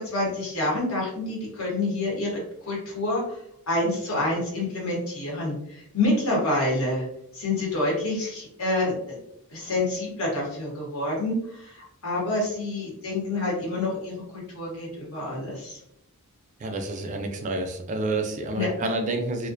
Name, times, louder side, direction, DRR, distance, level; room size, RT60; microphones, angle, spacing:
voice 1, 0.0-2.3 2.6-3.4 3.7-7.1 7.3-9.2 9.5-15.8 18.5-18.9, left 2 dB, 70° left, -3 dB, 1.0 m, -27 dB
voice 2, 16.6-19.5, right 2 dB, 35° right, 4 dB, 0.3 m, -29 dB
2.4 x 2.1 x 2.5 m, 0.75 s
head